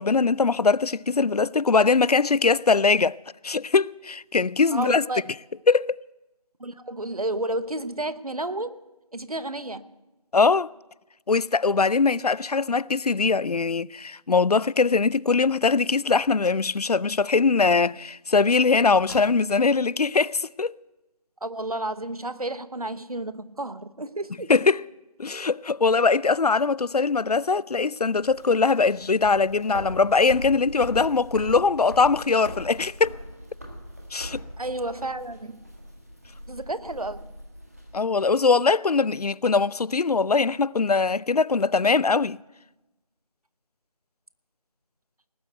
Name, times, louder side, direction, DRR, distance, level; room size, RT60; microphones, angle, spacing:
voice 1, 0.0-3.2 3.4-5.0 5.7-6.0 10.3-10.7 11.3-20.7 24.5-24.8 25.2-33.1 34.1-34.4 37.9-42.4, left 4 dB, 75° left, 0.4 m, -21 dB
voice 2, 4.7-5.3 6.6-8.8 9.1-9.9 21.4-24.5 34.6-35.6 36.5-37.3, right 2 dB, 70° right, 1.0 m, -31 dB
Car, 16.0-16.8 18.9-19.8, left 1 dB, 55° left, 2.0 m, -46 dB
sound 1, 28.0-37.9, equal, 25° right, 1.5 m, -40 dB
19.0 x 8.0 x 7.9 m
figure-of-eight pair, 180°, 20 cm